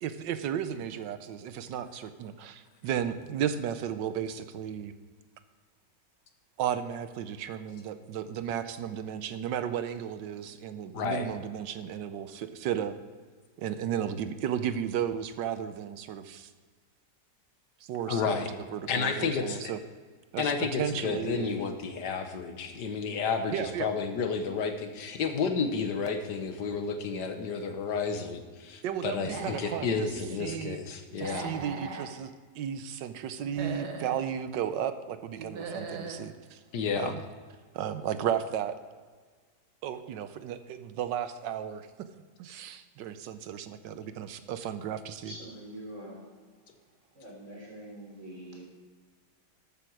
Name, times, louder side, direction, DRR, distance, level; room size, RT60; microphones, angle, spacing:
voice 1, 0.0-4.9 6.6-13.0 13.6-16.5 17.8-19.8 20.3-21.5 23.5-23.9 28.8-30.1 30.4-30.8 31.2-36.6 37.0-37.2 37.7-38.7 39.8-41.9 42.4-45.3, right 9 dB, 85° right, 11 dB, 1.4 m, -34 dB
voice 2, 10.9-11.3 18.1-18.5 18.9-19.7 20.4-31.5 36.7-37.1, left 5 dB, 70° left, 6 dB, 1.8 m, -31 dB
Human voice / Animal, 29.2-30.0 31.1-32.1 33.4-34.2 35.4-36.2, right 4 dB, 65° right, 1.7 m, -39 dB
voice 3, 45.2-46.2 47.1-48.6, equal, 40° right, -2 dB, 3.8 m, -44 dB
13.0 x 8.7 x 4.7 m, 1.5 s
omnidirectional pair, 1.9 m